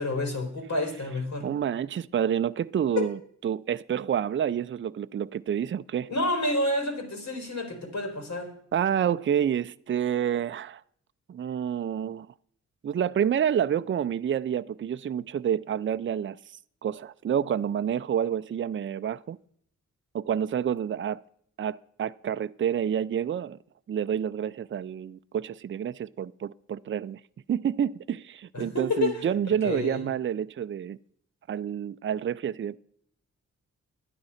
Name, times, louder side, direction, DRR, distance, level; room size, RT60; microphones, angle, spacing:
voice 1, 0.0-1.5 3.0-3.1 6.1-8.5 28.5-29.2 29.6-30.1, left 2 dB, 65° left, 3.8 m, -29 dB
voice 2, 1.4-6.1 8.7-10.8 11.3-12.3 12.8-16.4 16.8-19.4 20.1-21.2 21.6-23.6 23.9-27.2 27.5-31.0 31.5-32.8, right 9 dB, 40° right, 0.5 m, -28 dB
11.5 x 9.7 x 5.7 m
cardioid pair, 60°, 31 cm